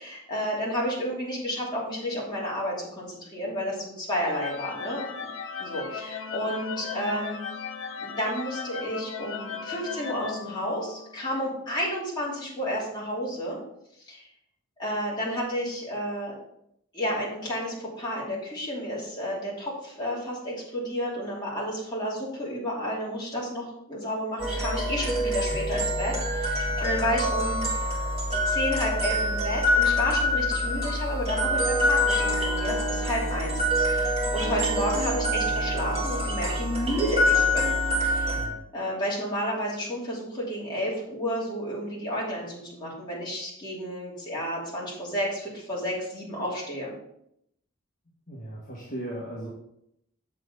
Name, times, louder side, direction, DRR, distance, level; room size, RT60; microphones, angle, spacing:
voice 1, 0.0-5.3 5.6-7.4 8.0-13.6 14.1-14.3 14.8-16.3 16.9-27.7 28.4-33.5 33.8-37.7 38.0-38.4 38.7-46.9, equal, 20° left, -6 dB, 2.8 m, -31 dB
sound 1, 4.2-11.2, left 6 dB, 65° left, 0.6 m, -36 dB
sound 2, 24.4-38.5, left 1 dB, 30° right, 2.1 m, -26 dB
voice 2, 48.3-49.5, right 1 dB, 40° left, -6 dB, 1.6 m, -37 dB
7.8 x 6.8 x 3.9 m, 0.76 s
head